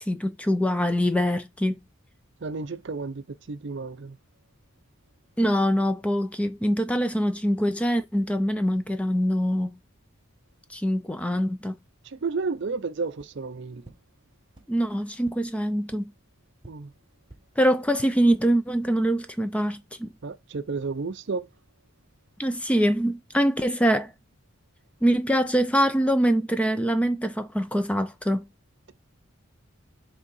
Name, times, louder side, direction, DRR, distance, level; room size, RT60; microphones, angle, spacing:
voice 1, 0.0-1.8 5.4-9.8 10.7-11.8 14.7-16.1 17.6-20.1 22.4-24.1 25.0-28.5, equal, 5° left, 0.4 m, -24 dB
voice 2, 2.4-4.2 12.1-13.8 16.7-16.9 20.2-21.5, right 4 dB, 55° right, 0.5 m, -32 dB
sound 1, 13.1-13.3 13.8-13.9 14.5-14.6 15.2-15.3 15.9-16.0 16.6-16.7 17.2-17.4 17.8-18.1, right 2 dB, 20° right, 1.5 m, -47 dB
5.4 x 3.4 x 5.4 m
head